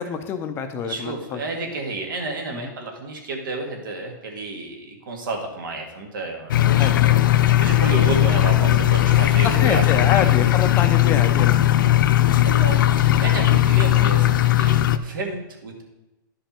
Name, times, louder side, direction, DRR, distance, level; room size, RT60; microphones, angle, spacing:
voice 1, 0.0-1.4 2.5-2.7 6.7-6.9 9.4-11.5, left 7 dB, 20° left, 7 dB, 0.5 m, -26 dB
voice 2, 0.8-10.2 11.5-11.6 12.4-15.8, right 3 dB, 75° right, 2 dB, 2.2 m, -31 dB
sound 1, 6.5-15.0, left 13 dB, 75° left, 0.5 m, -17 dB
11.5 x 5.2 x 4.4 m, 0.97 s
hypercardioid pair, 160°, 11 cm